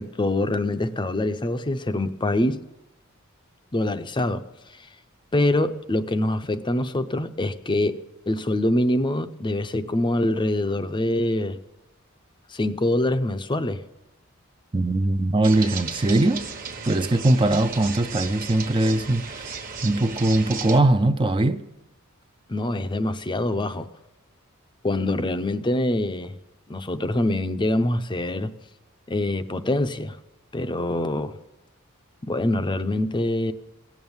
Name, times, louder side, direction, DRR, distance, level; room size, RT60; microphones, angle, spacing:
voice 1, 0.0-2.6 3.7-4.4 5.3-11.6 12.5-13.8 22.5-23.9 24.8-26.4 26.7-28.5 29.1-30.2 30.5-31.3 32.2-33.5, left 1 dB, 20° left, 0.6 m, -24 dB
voice 2, 14.7-16.5 16.8-19.5 19.8-21.6, right 2 dB, 25° right, 0.5 m, -21 dB
sound 1, 15.4-20.8, right 5 dB, 40° right, 1.2 m, -35 dB
17.0 x 7.2 x 9.5 m
head